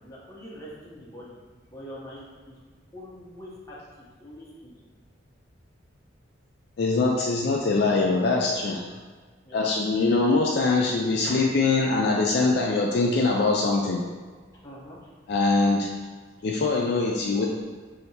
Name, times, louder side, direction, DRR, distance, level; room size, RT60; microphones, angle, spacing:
voice 1, 0.0-1.4 1.7-2.6 2.9-4.7 9.4-9.6 14.5-15.0, equal, 15° left, -7 dB, 0.8 m, -44 dB
voice 2, 6.8-8.9 9.5-14.0 15.3-15.9 16.4-17.5, left 3 dB, 55° left, -1 dB, 0.3 m, -23 dB
3.2 x 2.8 x 4.2 m, 1.5 s
head